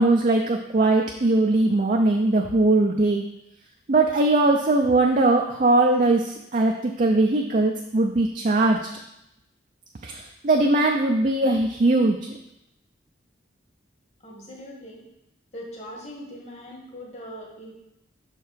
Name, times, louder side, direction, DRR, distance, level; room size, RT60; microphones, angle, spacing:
voice 1, 0.0-3.2 3.9-8.9 10.0-12.4, right 2 dB, 40° right, 1 dB, 0.5 m, -20 dB
voice 2, 14.2-15.1 15.5-17.7, equal, 35° left, -2 dB, 1.6 m, -40 dB
6.5 x 4.6 x 5.0 m, 0.83 s
head